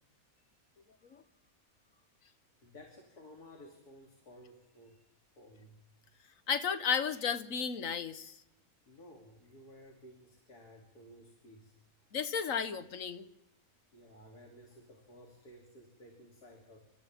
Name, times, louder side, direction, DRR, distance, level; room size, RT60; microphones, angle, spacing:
voice 1, 1.0-1.3 1.9-2.1 2.6-5.1 5.4-5.8 8.9-11.7 13.9-16.8, equal, 90° left, 1 dB, 3.6 m, -55 dB
voice 2, 6.5-8.4 12.1-13.3, left 7 dB, 60° left, 11 dB, 1.6 m, -33 dB
27.0 x 27.0 x 3.7 m, 0.78 s
omnidirectional pair, 1.6 m